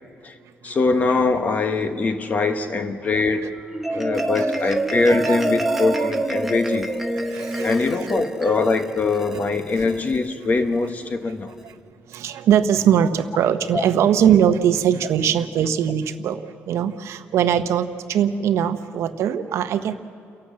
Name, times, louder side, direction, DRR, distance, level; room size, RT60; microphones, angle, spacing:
voice 1, 0.6-3.5 3.9-6.9 7.6-11.6 13.7-13.9, left 3 dB, 30° left, 9 dB, 1.2 m, -22 dB
Marimba xylophone, 3.6-10.2, right 1 dB, 5° right, 0.9 m, -26 dB
voice 2, 3.9-4.7 5.1-5.4 5.7-6.1 7.3-8.1 12.1-19.9, right 9 dB, 70° right, 10 dB, 0.9 m, -21 dB
29.5 x 12.0 x 7.6 m, 2.4 s
cardioid pair, 155°, 5 cm